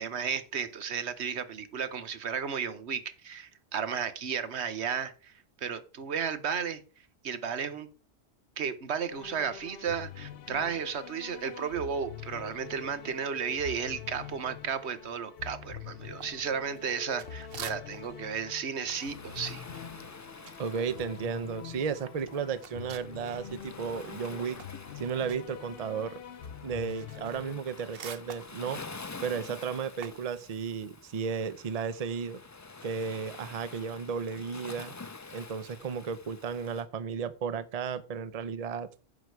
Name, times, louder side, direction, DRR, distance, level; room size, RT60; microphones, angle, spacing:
voice 1, 0.0-6.8 7.2-7.9 8.6-19.6, right 7 dB, 90° right, 1.3 m, -34 dB
sound 1, 9.1-27.6, left 8 dB, 65° left, 0.9 m, -45 dB
sound 2, 16.2-18.2 18.5-23.7 24.1-30.3, right 7 dB, 65° right, 1.0 m, -48 dB
Waves surf, 18.9-36.8, left 3 dB, 25° left, 0.4 m, -48 dB
voice 2, 20.6-24.6 25.0-26.2 26.6-28.8 29.2-32.4 32.8-34.9 35.3-38.9, right 6 dB, 40° right, 0.6 m, -34 dB
9.9 x 6.3 x 4.6 m
omnidirectional pair, 1.1 m